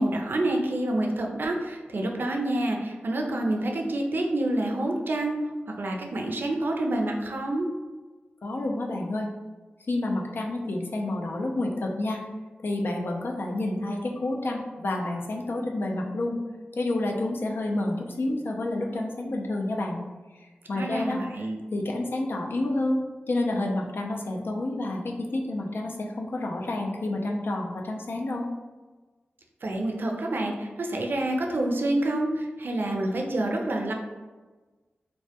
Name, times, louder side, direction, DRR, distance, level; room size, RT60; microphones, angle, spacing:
voice 1, 0.0-7.7 20.8-21.6 29.6-33.9, right 1 dB, 65° right, 1 dB, 0.4 m, -28 dB
voice 2, 8.4-9.3 9.9-12.2 12.6-16.4 16.7-20.0 20.4-21.2 21.7-23.0 23.3-28.5, left 2 dB, 70° left, 1 dB, 0.4 m, -29 dB
2.1 x 2.1 x 2.7 m, 1.3 s
cardioid pair, 55°, 4 cm